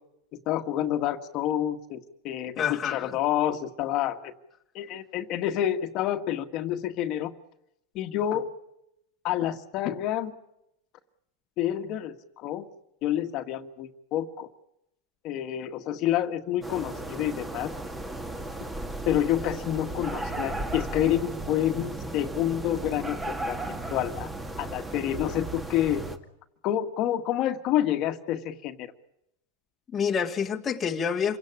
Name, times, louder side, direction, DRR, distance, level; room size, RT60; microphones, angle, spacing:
voice 1, 0.4-4.3 4.7-7.3 7.9-8.5 9.2-10.3 11.6-12.7 13.0-14.5 15.2-17.7 19.1-24.3 24.6-26.0 26.6-28.9, left 11 dB, 45° left, 1.7 m, -28 dB
voice 2, 2.6-3.1 29.9-31.4, left 7 dB, 20° left, 1.6 m, -27 dB
sound 1, 16.6-26.2, right 2 dB, 10° right, 2.1 m, -35 dB
27.5 x 17.5 x 8.5 m
supercardioid pair, 130°, 0 cm